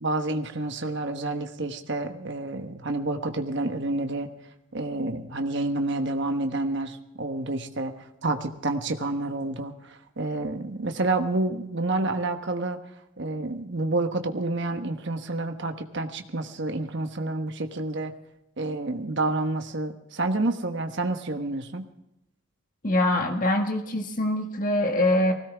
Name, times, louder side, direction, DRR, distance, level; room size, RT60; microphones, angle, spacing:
voice 1, 0.0-4.3 4.7-12.9 13.2-18.1 18.6-21.8, right 2 dB, 55° right, 6 dB, 1.2 m, -29 dB
voice 2, 22.8-25.3, left 1 dB, 40° left, 4 dB, 1.6 m, -24 dB
19.5 x 17.0 x 3.5 m, 0.86 s
head